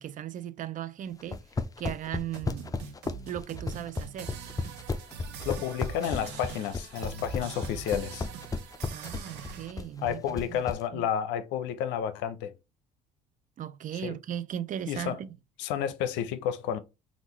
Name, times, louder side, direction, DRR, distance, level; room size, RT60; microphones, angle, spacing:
voice 1, 0.0-1.4 1.8-2.7 3.3-4.3 8.9-10.6 10.9-11.0 13.6-15.4, right 10 dB, 45° right, 0.4 m, -37 dB
sound 1, 1.2-10.8, left 3 dB, 20° left, 0.5 m, -33 dB
sound 2, 2.2-9.7, right 7 dB, 65° right, 0.8 m, -43 dB
voice 2, 5.4-8.3 10.0-12.5 13.9-14.2 14.9-15.2 15.6-16.8, left 9 dB, 70° left, 0.6 m, -31 dB
3.6 x 2.4 x 3.0 m
hypercardioid pair, 65°, 19 cm